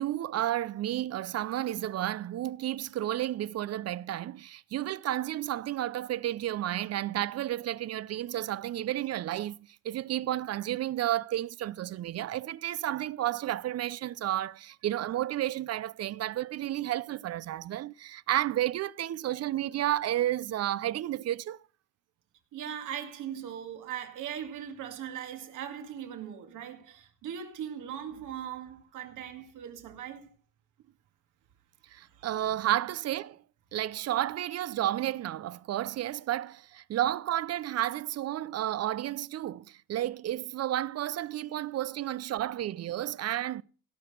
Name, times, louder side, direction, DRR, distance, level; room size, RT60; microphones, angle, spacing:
voice 1, 0.0-9.6 9.8-21.6 31.9-33.4 33.7-43.6, right 13 dB, 55° right, 0.5 m, -32 dB
voice 2, 22.5-30.3 32.0-32.6 42.0-42.1, right 9 dB, 85° right, 2.2 m, -40 dB
17.0 x 5.9 x 6.7 m
cardioid pair, 90°, 30 cm